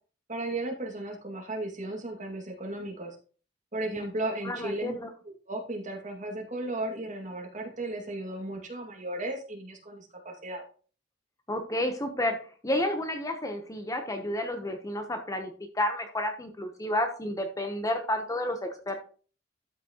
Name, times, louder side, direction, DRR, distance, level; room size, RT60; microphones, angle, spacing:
voice 1, 0.3-3.2 3.7-5.0 5.5-10.6, right 2 dB, 40° right, 0 dB, 2.3 m, -35 dB
voice 2, 4.4-5.1 11.5-12.4 12.6-19.0, left 1 dB, 20° left, 5 dB, 1.0 m, -31 dB
12.5 x 5.9 x 3.0 m, 0.40 s
head